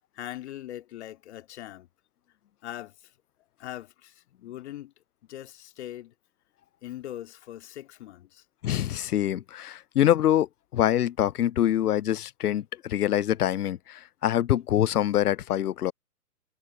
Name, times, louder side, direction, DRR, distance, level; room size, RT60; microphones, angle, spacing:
voice 1, 0.1-1.9 2.6-3.1 3.6-4.9 5.3-6.1 6.8-8.4, left 13 dB, 45° left, 2.4 m, -41 dB
voice 2, 8.6-15.9, left 11 dB, 70° left, 0.6 m, -25 dB
figure-of-eight pair, 125°, 47 cm